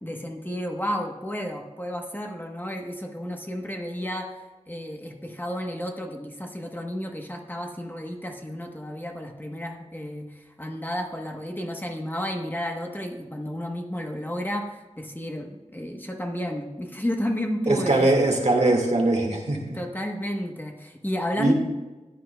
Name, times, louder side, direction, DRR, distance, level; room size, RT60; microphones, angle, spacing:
voice 1, 0.0-18.1 19.6-21.5, equal, 15° left, 2 dB, 1.0 m, -32 dB
voice 2, 17.7-19.6 21.4-21.5, right 2 dB, 60° right, 0 dB, 1.8 m, -21 dB
14.5 x 9.2 x 2.3 m, 1.2 s
wide cardioid pair, 55°, 12 cm